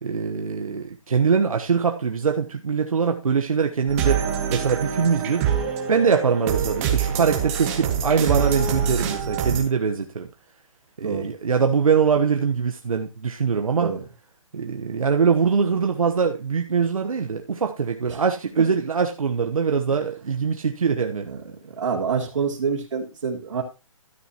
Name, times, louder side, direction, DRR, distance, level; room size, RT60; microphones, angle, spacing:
voice 1, 0.0-4.2 4.5-5.5 5.9-10.3 11.0-14.0 14.5-21.3, right 6 dB, 85° right, 4 dB, 1.2 m, -23 dB
sound 1, 3.9-9.6, right 8 dB, 25° right, 2.1 m, -25 dB
voice 2, 21.2-23.6, right 6 dB, 60° right, -4 dB, 3.2 m, -27 dB
13.0 x 9.9 x 3.0 m, 0.28 s
hypercardioid pair, 160°, 17 cm